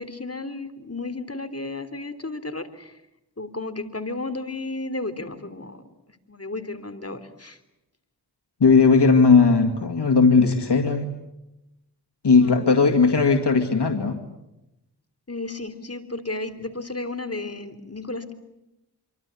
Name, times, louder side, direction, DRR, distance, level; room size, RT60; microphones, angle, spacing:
voice 1, 0.0-3.0 3.4-5.8 6.3-7.6 12.4-12.9 15.3-18.3, left 2 dB, 35° left, 9 dB, 3.3 m, -33 dB
voice 2, 8.6-11.1 12.2-14.2, left 4 dB, 90° left, 3 dB, 2.2 m, -17 dB
27.0 x 24.0 x 8.4 m, 0.91 s
wide cardioid pair, 45°, 40 cm